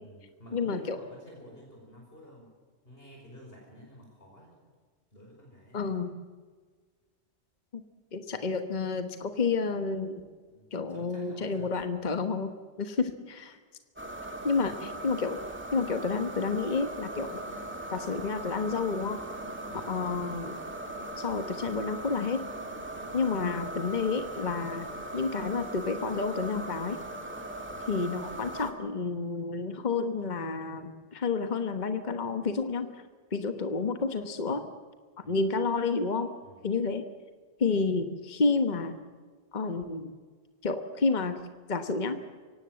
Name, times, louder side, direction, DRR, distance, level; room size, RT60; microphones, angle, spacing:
voice 1, 0.0-2.5 2.8-4.6 5.1-5.9 10.5-11.9 14.4-14.7 19.6-19.9 23.1-23.3 27.7-27.9 35.2-35.4 36.4-36.6, equal, 60° left, -2 dB, 5.3 m, -51 dB
voice 2, 0.5-1.0 5.7-6.1 7.7-7.8 8.1-10.2 10.7-12.5 12.8-13.6 14.4-15.4 15.7-17.4 17.9-19.2 19.9-20.6 21.2-22.4 23.1-27.0 27.9-33.0 33.3-34.6 35.2-36.3 36.6-37.0 37.6-39.0 39.5-40.1 40.6-41.4 41.7-42.2, left 4 dB, 45° left, 8 dB, 1.3 m, -30 dB
sound 1, 14.0-28.7, right 1 dB, 10° right, 2.6 m, -39 dB
24.5 x 17.5 x 7.7 m, 1.5 s
omnidirectional pair, 1.1 m